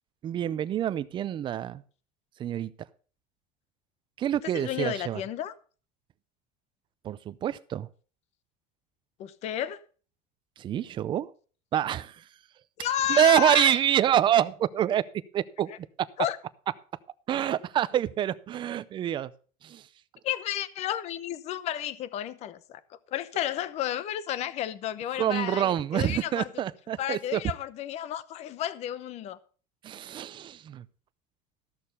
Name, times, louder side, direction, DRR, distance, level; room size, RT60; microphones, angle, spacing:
voice 1, 0.2-1.8 2.4-2.7 4.2-5.2 7.0-7.9 10.6-11.3 11.7-12.2 13.1-15.0 15.3-15.7 16.0-16.1 17.3-19.3 19.6-19.9 25.2-27.4 29.8-30.8, right 11 dB, 30° right, 0.5 m, -26 dB
voice 2, 4.5-5.5 9.2-9.8 12.8-13.8 15.7-15.8 16.2-16.4 20.2-26.5 27.0-29.4, left 11 dB, 40° left, 0.8 m, -32 dB
14.0 x 6.5 x 5.5 m
cardioid pair, 155°, 17 cm